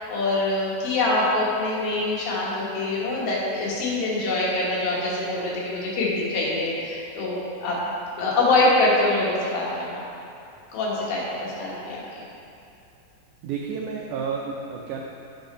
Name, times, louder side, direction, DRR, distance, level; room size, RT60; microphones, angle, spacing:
voice 1, 0.0-7.8 8.2-10.1 10.7-12.0, left 2 dB, 75° left, -6 dB, 3.3 m, -24 dB
voice 2, 13.4-15.0, right 6 dB, 85° right, -1 dB, 1.8 m, -31 dB
9.5 x 4.3 x 5.3 m, 2.6 s
omnidirectional pair, 4.2 m